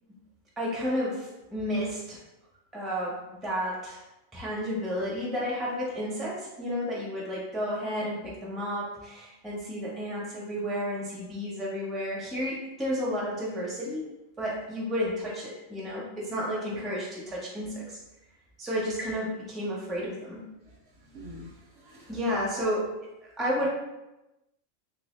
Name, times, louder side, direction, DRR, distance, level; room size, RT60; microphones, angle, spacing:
voice 1, 0.6-2.2 2.7-3.2 3.4-4.0 4.3-14.1 14.4-18.0 18.6-20.4 22.1-22.9 23.2-23.7, equal, ahead, -5 dB, 0.6 m, -32 dB
voice 2, 20.7-22.2 23.6-23.7, equal, 60° right, -3 dB, 0.8 m, -47 dB
3.3 x 2.7 x 3.2 m, 0.98 s
omnidirectional pair, 1.3 m